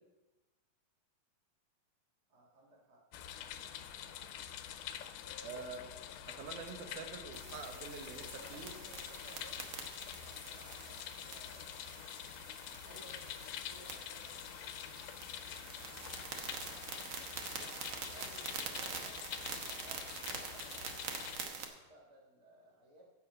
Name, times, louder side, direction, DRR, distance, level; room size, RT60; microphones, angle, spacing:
voice 1, 2.3-3.1 3.5-4.2 5.2-6.4 6.9-7.8 8.5-9.8 10.1-12.0 12.7-15.7 16.6-17.3 18.1-23.0, right 1 dB, 40° right, -3 dB, 1.7 m, -60 dB
sound 1, 3.1-21.4, left 10 dB, 80° left, 2.0 m, -46 dB
voice 2, 5.4-5.9 6.3-8.7, right 5 dB, 70° right, 5 dB, 2.3 m, -46 dB
sound 2, 7.3-21.6, right 5 dB, 90° right, 1.1 m, -46 dB
16.0 x 5.7 x 5.2 m, 1.1 s
omnidirectional pair, 3.9 m